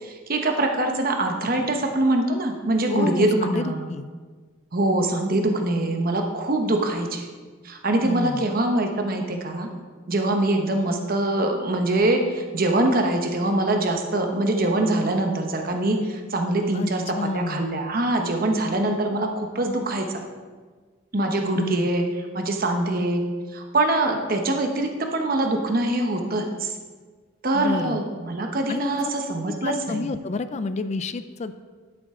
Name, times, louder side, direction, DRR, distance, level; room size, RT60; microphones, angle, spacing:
voice 1, 0.0-3.9 4.7-7.2 7.6-9.7 10.1-20.1 21.1-22.0 22.3-23.2 23.5-26.7 27.4-30.0, right 2 dB, 45° right, 4 dB, 1.0 m, -23 dB
voice 2, 2.9-4.1 8.0-8.5 16.7-17.6 21.5-21.9 27.5-28.0 28.7-29.0 29.6-31.7, left 3 dB, 35° left, 11 dB, 0.3 m, -29 dB
12.0 x 7.0 x 3.7 m, 1.5 s
head